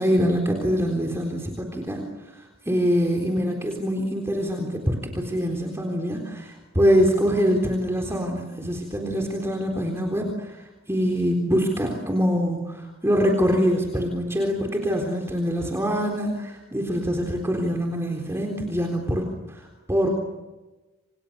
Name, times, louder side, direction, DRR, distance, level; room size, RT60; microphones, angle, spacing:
voice 1, 0.0-20.1, equal, 15° right, 1 dB, 3.8 m, -24 dB
28.5 x 28.0 x 6.8 m, 1.2 s
head